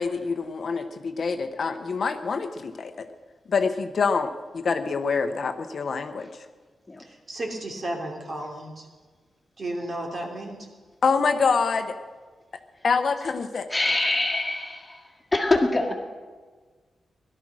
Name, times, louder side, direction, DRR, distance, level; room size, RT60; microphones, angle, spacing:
voice 1, 0.0-3.1 3.5-6.3 11.0-12.0 12.8-13.7, left 5 dB, 55° left, 8 dB, 0.9 m, -26 dB
voice 2, 7.0-8.9 9.6-10.6, right 1 dB, 40° right, 1 dB, 2.9 m, -33 dB
voice 3, 13.7-15.9, left 2 dB, 20° left, 2 dB, 1.9 m, -25 dB
17.5 x 12.0 x 6.2 m, 1.4 s
wide cardioid pair, 130°, 0 cm